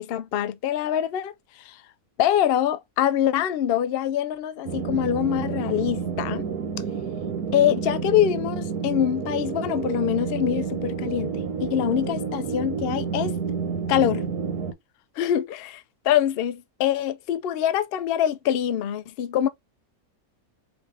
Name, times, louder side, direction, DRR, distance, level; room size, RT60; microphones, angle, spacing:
voice 1, 0.0-1.8 2.2-6.4 7.5-13.4 13.9-14.3 15.2-19.5, left 10 dB, 75° left, 0.5 m, -24 dB
sound 1, 4.6-14.7, right 6 dB, 75° right, 1.5 m, -29 dB
4.8 x 3.2 x 3.4 m
omnidirectional pair, 1.6 m